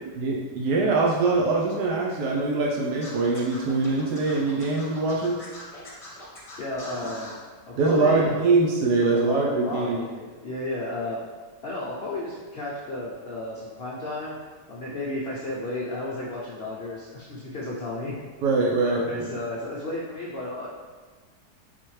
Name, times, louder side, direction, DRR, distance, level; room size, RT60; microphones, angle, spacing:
voice 1, 0.2-5.4 7.8-10.0 18.4-19.3, right 3 dB, 80° right, -2 dB, 1.1 m, -23 dB
Scratching (performance technique), 3.0-7.4, left 2 dB, 25° left, 0.8 m, -42 dB
voice 2, 6.6-8.3 9.1-11.2 11.6-14.4 14.7-18.2 18.8-20.7, left 1 dB, 70° left, -5 dB, 0.6 m, -33 dB
4.2 x 4.0 x 3.1 m, 1.4 s
omnidirectional pair, 1.7 m